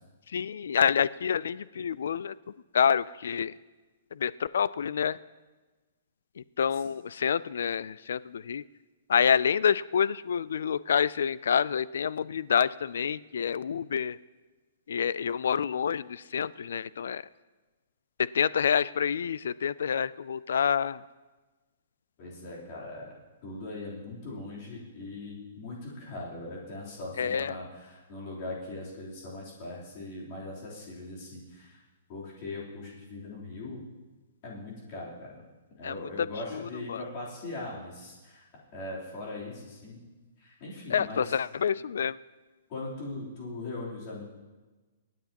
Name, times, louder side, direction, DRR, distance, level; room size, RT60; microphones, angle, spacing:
voice 1, 0.3-2.3 2.7-3.5 4.1-5.2 6.4-8.6 9.1-14.2 14.9-17.2 18.2-21.0 27.2-27.6 35.8-35.9 36.5-36.6 36.9-37.0 40.9-42.2, left 7 dB, 70° left, 19 dB, 0.3 m, -27 dB
voice 2, 22.2-23.2 23.4-31.8 32.1-33.8 34.4-35.4 35.7-38.4 38.7-40.0 40.4-41.3 42.7-44.2, left 2 dB, 30° left, -5 dB, 3.5 m, -40 dB
25.0 x 9.3 x 3.0 m, 1.2 s
hypercardioid pair, 175°, 0 cm